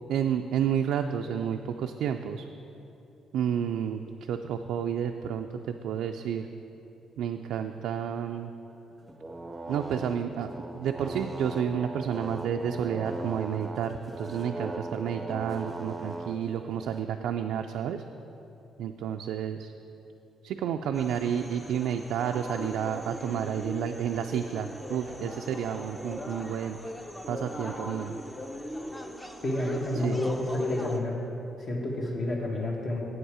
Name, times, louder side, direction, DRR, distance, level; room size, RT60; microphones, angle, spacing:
voice 1, 0.1-2.4 3.3-4.0 4.3-6.5 7.2-8.5 9.7-10.5 10.7-18.0 18.8-19.7 20.4-26.8 27.3-28.1 30.0-30.2, right 8 dB, 80° right, 5 dB, 0.3 m, -30 dB
sound 1, 8.9-17.0, right 2 dB, 15° right, 0.6 m, -39 dB
sound 2, 20.9-31.0, left 1 dB, 15° left, 0.7 m, -39 dB
voice 2, 29.4-31.2 31.7-33.0, left 1 dB, 45° left, -1 dB, 1.7 m, -29 dB
7.9 x 7.9 x 4.9 m, 3.0 s
cardioid pair, 90°, 0 cm